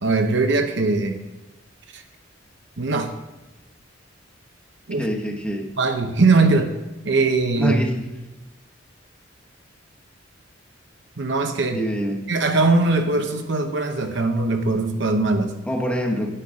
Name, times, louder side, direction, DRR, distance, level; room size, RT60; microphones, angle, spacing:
voice 1, 0.0-1.2 1.9-2.0 2.8-3.1 4.9-5.1 5.8-6.7 7.0-7.8 11.2-11.8 12.3-15.5, right 3 dB, 65° right, 6 dB, 0.9 m, -20 dB
voice 2, 5.0-5.7 7.6-8.0 11.7-12.2 15.7-16.3, equal, 5° left, 1 dB, 1.0 m, -25 dB
10.0 x 9.8 x 3.7 m, 1.0 s
head